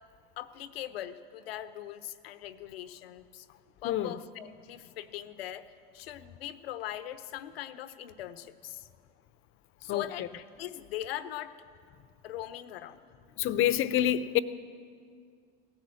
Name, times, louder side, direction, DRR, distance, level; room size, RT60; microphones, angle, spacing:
voice 1, 0.4-3.5 3.8-8.9 9.8-11.6 12.2-13.0, left 12 dB, 85° left, 0.8 m, -41 dB
voice 2, 13.4-14.4, left 12 dB, 45° left, 0.7 m, -26 dB
17.5 x 10.5 x 7.6 m
hypercardioid pair, 90°, 29 cm